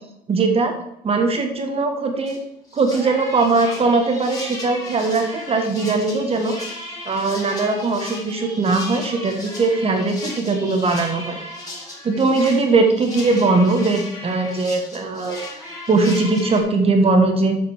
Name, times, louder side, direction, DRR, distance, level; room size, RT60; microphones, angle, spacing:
voice 1, 0.3-0.7 1.0-2.4 2.7-6.5 7.1-11.4 12.0-15.4 15.9-17.6, right 3 dB, 35° right, 4 dB, 1.4 m, -20 dB
sound 1, 2.3-2.4 2.7-16.6, left 1 dB, 20° left, 3.8 m, -35 dB
8.3 x 5.0 x 7.3 m, 0.81 s
cardioid pair, 110°, 17 cm